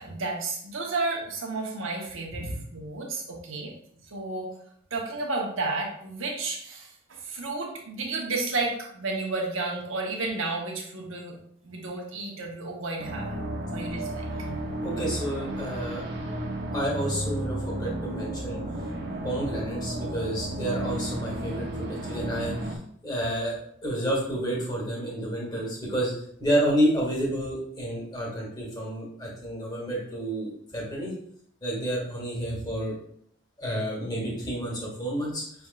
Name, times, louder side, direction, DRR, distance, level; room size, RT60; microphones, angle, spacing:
voice 1, 0.0-3.7 4.1-4.5 4.9-11.4 11.6-13.4 13.7-14.5, right 3 dB, 80° right, 0 dB, 1.0 m, -32 dB
sound 1, 13.0-22.8, right 1 dB, 50° right, 0.7 m, -33 dB
voice 2, 14.8-16.1 16.7-18.6 19.2-22.8 23.0-23.6 23.8-26.1 26.4-31.1 31.6-32.9 33.6-35.4, right 1 dB, 20° left, -4 dB, 1.4 m, -30 dB
5.9 x 3.4 x 2.5 m, 0.66 s
head